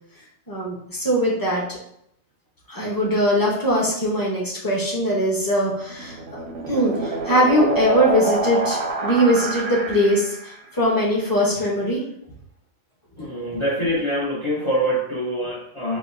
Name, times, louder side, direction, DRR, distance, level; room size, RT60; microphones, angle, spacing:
voice 1, 0.5-1.8 2.7-6.2 6.7-12.0 13.2-13.3, equal, 20° left, -4 dB, 0.9 m, -21 dB
sound 1, 5.7-10.5, right 3 dB, 85° right, 0.9 m, -27 dB
voice 2, 13.2-16.0, equal, 35° left, -4 dB, 0.5 m, -24 dB
4.8 x 2.0 x 2.5 m, 0.73 s
omnidirectional pair, 1.2 m